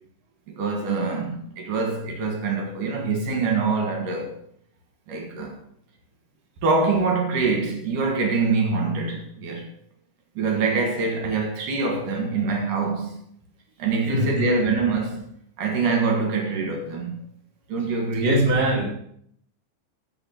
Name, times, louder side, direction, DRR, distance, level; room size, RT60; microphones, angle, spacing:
voice 1, 0.5-4.3 5.1-5.6 6.6-9.7 10.4-13.2 13.8-15.3 15.6-17.2 17.7-18.3, right 4 dB, 70° right, 3.3 m, -24 dB
voice 2, 14.1-14.6 18.2-18.8, right 1 dB, 20° right, 2.5 m, -21 dB
15.0 x 6.0 x 6.2 m
omnidirectional pair, 3.9 m